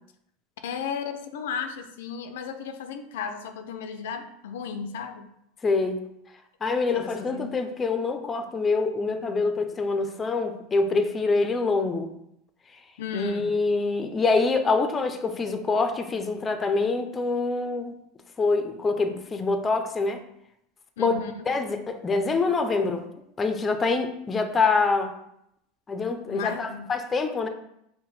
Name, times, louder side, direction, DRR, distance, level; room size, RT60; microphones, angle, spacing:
voice 1, 0.6-5.3 6.9-7.6 13.0-13.5 21.0-21.5 26.3-26.9, left 6 dB, 85° left, 8 dB, 0.4 m, -34 dB
voice 2, 5.6-6.0 6.6-12.1 13.1-18.0 18.4-20.2 21.0-21.1 21.5-23.0 23.4-25.1 25.9-27.5, left 3 dB, 20° left, 7 dB, 0.5 m, -25 dB
5.6 x 2.2 x 4.1 m, 0.78 s
supercardioid pair, 120°, 0 cm